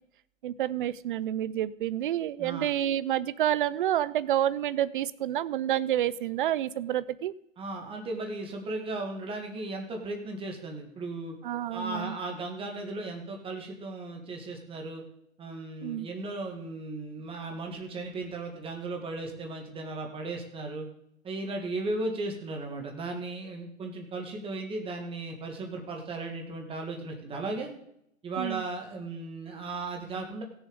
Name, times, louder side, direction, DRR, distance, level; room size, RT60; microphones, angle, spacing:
voice 1, 0.4-7.3 11.4-12.2 15.8-16.1 28.4-28.6, right 12 dB, 40° right, 18 dB, 0.4 m, -29 dB
voice 2, 7.6-11.3 11.7-15.0 15.4-20.9 21.2-27.7 28.2-30.4, right 2 dB, 15° right, 2 dB, 1.8 m, -36 dB
16.0 x 7.1 x 5.2 m, 0.76 s
hypercardioid pair, 140°, 41 cm